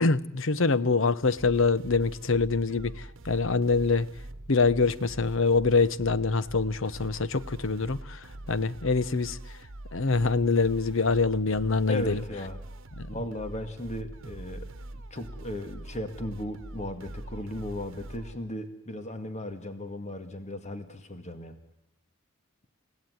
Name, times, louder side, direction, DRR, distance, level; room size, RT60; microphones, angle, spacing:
voice 1, 0.0-4.1 4.5-9.4 9.9-12.2 13.0-13.1, left 4 dB, 65° left, 0.9 m, -25 dB
sound 1, 1.2-18.4, right 1 dB, 65° right, 1.2 m, -43 dB
voice 2, 11.9-12.6 13.1-21.6, left 1 dB, 35° left, 2.0 m, -36 dB
29.5 x 17.0 x 9.5 m
head